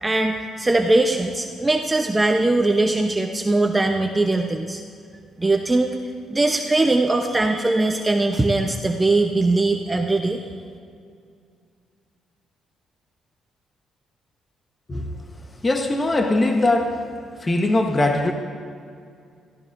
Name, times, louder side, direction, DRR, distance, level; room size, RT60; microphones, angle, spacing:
voice 1, 0.0-4.8 5.4-5.9 6.3-10.4, right 2 dB, 15° right, 2 dB, 0.9 m, -20 dB
voice 2, 15.6-17.1 17.4-18.3, left 2 dB, 25° left, 3 dB, 1.2 m, -21 dB
23.0 x 15.0 x 2.7 m, 2.3 s
cardioid pair, 90°, 0 cm